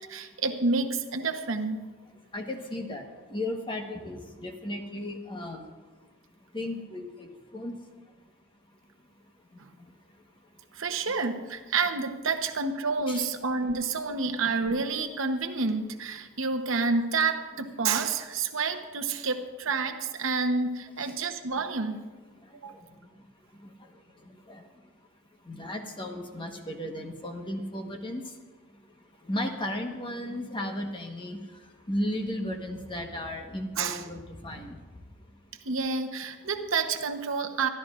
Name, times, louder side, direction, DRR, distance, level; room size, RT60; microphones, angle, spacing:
voice 1, 0.0-1.8 9.6-9.7 10.7-22.0 22.5-22.7 33.8-34.0 34.5-34.7 35.6-37.7, right 4 dB, 65° right, 5 dB, 0.9 m, -29 dB
voice 2, 2.3-5.6 6.5-7.8 13.1-13.3 17.6-17.7 21.0-21.1 22.7-22.8 23.6-23.9 24.5-24.6 25.5-28.3 29.2-31.5 31.9-34.8, left 1 dB, 25° left, 3 dB, 1.2 m, -35 dB
25.0 x 12.0 x 2.5 m, 1.3 s
head